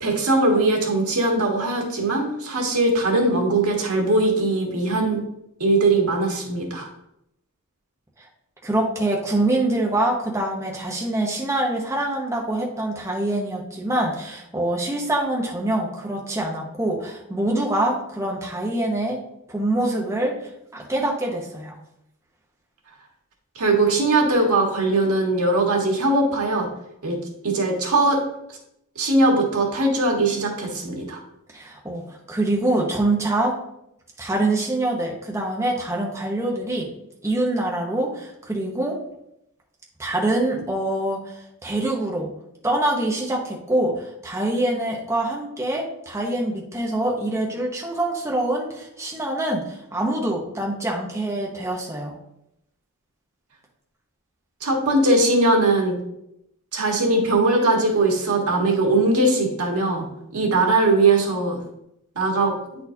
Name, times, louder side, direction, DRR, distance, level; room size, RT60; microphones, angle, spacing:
voice 1, 0.0-5.2 5.6-6.9 23.5-26.7 27.0-28.2 28.9-31.2 54.6-56.0 56.7-60.1 60.3-61.6 62.1-62.5, right 2 dB, 85° right, 0 dB, 1.5 m, -20 dB
voice 2, 8.6-19.2 19.5-20.3 20.7-21.8 31.5-33.5 34.2-36.9 37.2-39.0 40.0-41.3 41.6-42.3 42.6-52.1, right 1 dB, 15° right, -1 dB, 0.9 m, -25 dB
9.3 x 4.2 x 2.8 m, 0.81 s
head